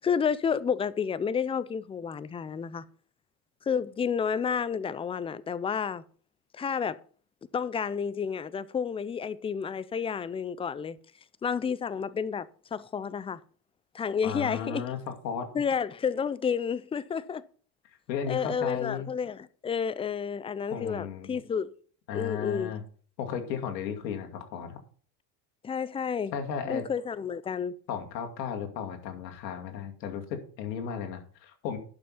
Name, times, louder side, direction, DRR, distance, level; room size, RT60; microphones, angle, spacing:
voice 1, 0.0-2.8 3.7-6.0 6.5-7.0 7.5-11.0 11.4-13.4 13.9-14.9 15.5-17.4 18.3-21.7 22.1-22.7 25.6-26.3 26.7-27.8, left 6 dB, 15° left, 0.4 m, -30 dB
voice 2, 14.2-15.5 18.1-19.1 20.7-21.4 22.1-22.8 23.2-24.8 26.3-26.9 27.9-31.8, left 7 dB, 85° left, 2.5 m, -34 dB
11.5 x 6.1 x 5.6 m
supercardioid pair, 100°, 50 cm